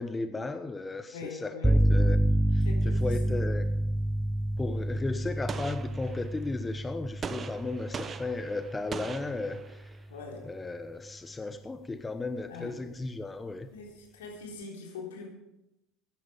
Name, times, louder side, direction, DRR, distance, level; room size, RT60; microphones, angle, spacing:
voice 1, 0.0-2.2 2.5-3.6 4.6-9.9 10.4-13.7, left 3 dB, 20° left, 9 dB, 0.9 m, -35 dB
voice 2, 1.1-1.8 2.6-3.3 10.1-10.5 12.5-12.8 13.7-15.3, left 4 dB, 75° left, -1 dB, 3.8 m, -42 dB
sound 1, 1.6-9.4, right 1 dB, 5° right, 0.6 m, -28 dB
Gunshot gunfire, 5.5-6.5 7.2-10.0, right 6 dB, 35° right, 0.9 m, -41 dB
16.0 x 10.5 x 5.1 m, 0.91 s
hypercardioid pair, 70°, 0 cm